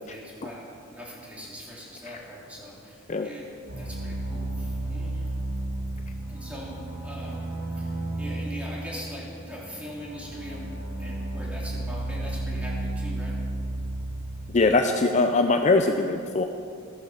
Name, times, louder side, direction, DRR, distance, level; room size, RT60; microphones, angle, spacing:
voice 1, 0.0-5.3 6.3-6.8 7.0-7.4 7.8-10.7 11.0-13.4, equal, 5° right, -5 dB, 3.2 m, -41 dB
sound 1, 3.7-14.5, right 2 dB, 50° right, 2.6 m, -33 dB
voice 2, 14.5-16.4, left 3 dB, 35° left, 5 dB, 0.5 m, -21 dB
15.0 x 9.3 x 7.2 m, 2.4 s
head